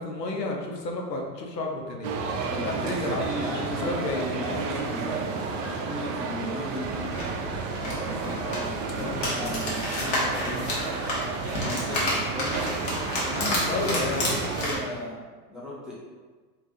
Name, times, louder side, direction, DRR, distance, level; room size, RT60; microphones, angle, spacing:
voice 1, 0.0-2.1 2.6-4.3 9.0-9.1 13.7-14.3, left 2 dB, 80° left, 0 dB, 0.7 m, -31 dB
sound 1, 2.0-14.8, right 4 dB, 55° right, 0.5 m, -32 dB
voice 2, 2.5-7.0 7.8-10.7 11.4-12.7 13.1-15.2 15.5-15.9, equal, ahead, -9 dB, 0.7 m, -36 dB
sound 2, 6.8-14.7, left 1 dB, 40° left, 1.0 m, -31 dB
3.2 x 2.4 x 2.6 m, 1.4 s
figure-of-eight pair, 90°, 49 cm